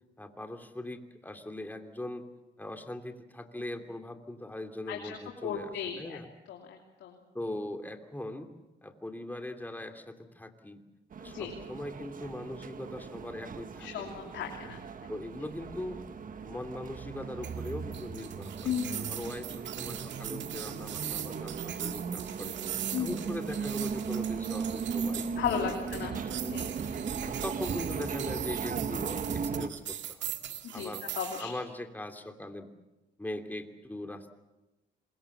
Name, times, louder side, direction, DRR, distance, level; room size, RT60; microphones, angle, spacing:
voice 1, 0.2-2.2 2.6-6.3 7.3-8.5 8.8-10.8 11.2-14.2 15.1-16.0 16.4-18.7 19.0-22.6 23.0-25.8 26.1-26.6 27.2-30.3 30.7-31.0 31.4-32.7 33.2-34.3, left 1 dB, 10° left, 6 dB, 2.9 m, -40 dB
voice 2, 4.9-6.2 6.5-7.1 11.3-11.5 13.8-15.1 18.6-19.1 22.9-23.1 25.4-26.2 26.4-26.7 30.6-31.5, left 8 dB, 80° left, 2 dB, 3.0 m, -35 dB
sound 1, 11.1-29.7, right 6 dB, 50° right, 1.5 m, -37 dB
sound 2, 17.4-31.4, right 11 dB, 80° right, 2.1 m, -40 dB
27.0 x 22.0 x 7.3 m, 1.0 s
cardioid pair, 75°, 18 cm